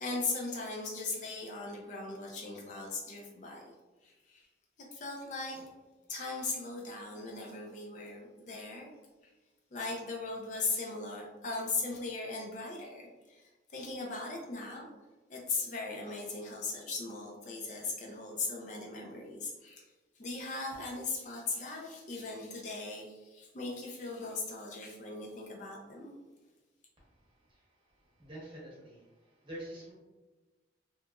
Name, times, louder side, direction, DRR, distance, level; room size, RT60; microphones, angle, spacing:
voice 1, 0.0-3.6 4.0-4.5 4.9-5.7 6.1-8.9 9.7-14.9 15.3-19.8 20.2-26.1, left 3 dB, 40° left, -1 dB, 0.4 m, -38 dB
voice 2, 27.0-29.9, right 1 dB, 30° right, -6 dB, 0.9 m, -48 dB
2.8 x 2.4 x 2.2 m, 1.2 s
head